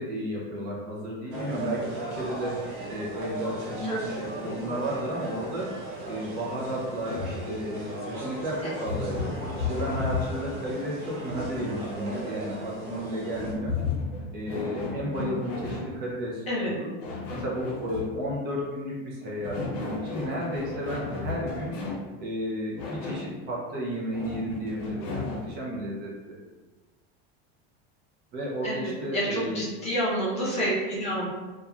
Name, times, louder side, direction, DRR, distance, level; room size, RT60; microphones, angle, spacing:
voice 1, 0.0-2.6 2.9-5.8 6.1-9.4 9.6-13.8 14.3-16.9 17.3-21.8 22.2-26.4 28.3-29.7, equal, 30° right, -5 dB, 0.5 m, -33 dB
sound 1, 1.3-13.5, right 1 dB, 85° right, 1.0 m, -37 dB
sound 2, 7.1-7.4 8.9-10.5 11.3-12.0 13.3-16.0 17.0-18.2 19.2-22.1 22.8-23.3 24.1-25.5, left 4 dB, 65° left, 0.7 m, -34 dB
voice 2, 28.6-31.3, equal, 20° left, -7 dB, 0.5 m, -29 dB
2.9 x 2.3 x 2.4 m, 1.2 s
supercardioid pair, 165°, 32 cm